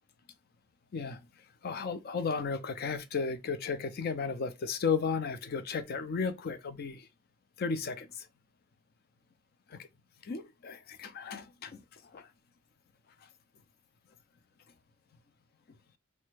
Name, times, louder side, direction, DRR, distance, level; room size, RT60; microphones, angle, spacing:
voice 1, 0.9-1.3 1.6-7.1 7.6-8.3 9.7-9.9 10.2-12.3, left 5 dB, 45° left, 0.3 m, -34 dB
3.2 x 2.1 x 3.2 m
head